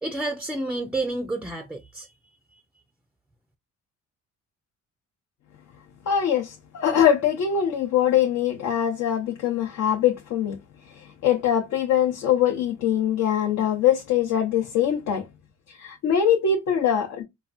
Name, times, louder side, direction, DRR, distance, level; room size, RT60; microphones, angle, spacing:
voice 1, 0.0-2.1, right 2 dB, 5° right, 0.3 m, -29 dB
voice 2, 6.1-10.6 10.9-15.3 15.7-17.2, left 9 dB, 70° left, 0.7 m, -23 dB
4.0 x 2.3 x 2.5 m
cardioid pair, 90°, 30 cm